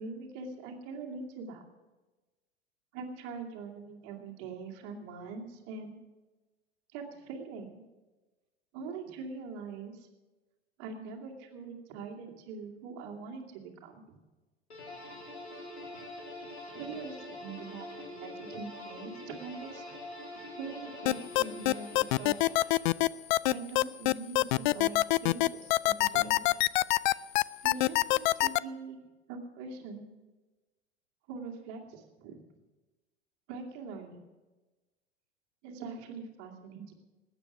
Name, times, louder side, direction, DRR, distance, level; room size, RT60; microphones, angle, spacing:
voice 1, 0.0-1.6 2.9-6.0 6.9-7.8 8.7-10.0 10.8-14.2 16.7-19.8 20.6-22.4 23.5-26.4 27.6-29.0 29.3-30.1 31.3-32.4 33.5-34.2 35.6-36.9, right 4 dB, 50° right, 2 dB, 2.5 m, -43 dB
sound 1, 14.7-23.0, left 1 dB, 85° left, 3.6 m, -45 dB
sound 2, 21.1-28.6, left 19 dB, 50° left, 0.4 m, -24 dB
20.0 x 9.0 x 6.0 m, 1.2 s
figure-of-eight pair, 85°, 32 cm